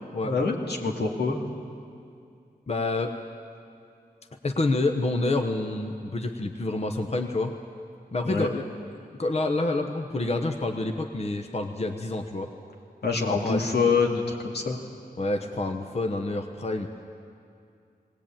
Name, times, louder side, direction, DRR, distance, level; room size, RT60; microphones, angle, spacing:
voice 1, 0.2-1.4 8.2-8.5 13.0-14.8, left 4 dB, 90° left, -1 dB, 2.3 m, -25 dB
voice 2, 2.7-3.1 4.4-7.5 8.1-8.7 9.1-12.5 13.3-13.6 15.2-16.9, left 2 dB, 40° left, 5 dB, 1.0 m, -28 dB
19.5 x 18.5 x 8.9 m, 2.4 s
wide cardioid pair, 120°, 16 cm